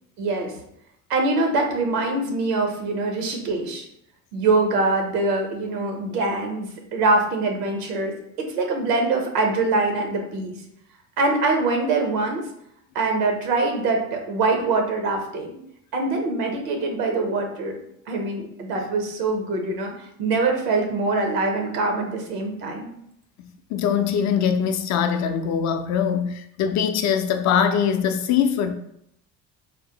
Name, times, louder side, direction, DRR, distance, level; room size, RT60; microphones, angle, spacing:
voice 1, 0.2-0.5 1.1-3.8 4.3-10.5 11.2-12.4 12.9-15.6 15.9-17.8 18.1-19.9 20.2-22.9, right 3 dB, 85° right, 0.7 m, -24 dB
voice 2, 23.4-28.7, left 7 dB, 40° left, 0.4 m, -22 dB
3.6 x 2.1 x 2.8 m
hypercardioid pair, 60°, 46 cm